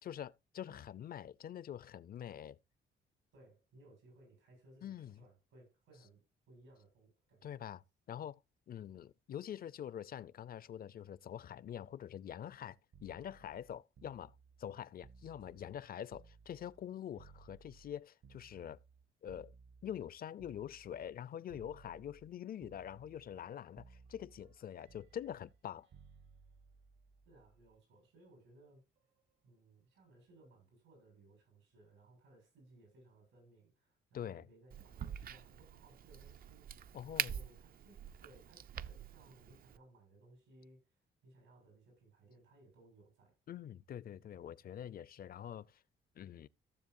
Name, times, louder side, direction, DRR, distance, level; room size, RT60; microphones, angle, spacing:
voice 1, 0.0-2.6 4.8-5.2 7.4-7.8 8.1-8.4 8.7-14.3 14.6-18.8 19.2-19.5 19.8-25.9 34.1-34.5 36.9-37.3 43.5-45.8 46.2-46.5, left 10 dB, 50° left, 0.5 m, -45 dB
voice 2, 3.3-6.2 6.5-7.7 27.3-28.8 29.4-41.0 41.2-43.3, right 2 dB, 90° right, 7.2 m, -63 dB
sound 1, 12.9-16.9 17.2-21.2 21.5-22.3 22.6-23.5 23.8-27.8 29.0-29.2, right 5 dB, 65° right, 1.2 m, -61 dB
Crack, 34.7-39.8, right 9 dB, 50° right, 0.5 m, -44 dB
15.5 x 6.9 x 2.6 m
cardioid pair, 90°, 20 cm